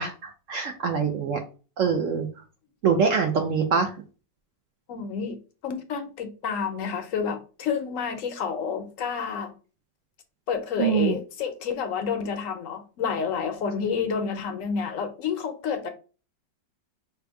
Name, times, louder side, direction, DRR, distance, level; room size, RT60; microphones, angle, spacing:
voice 1, 0.0-1.4 1.8-2.3 2.8-3.9 10.8-11.1, right 6 dB, 65° right, 0.8 m, -24 dB
voice 2, 4.9-5.4 5.6-9.5 10.5-15.9, left 6 dB, 65° left, 0.9 m, -29 dB
3.5 x 2.6 x 4.5 m
omnidirectional pair, 1.9 m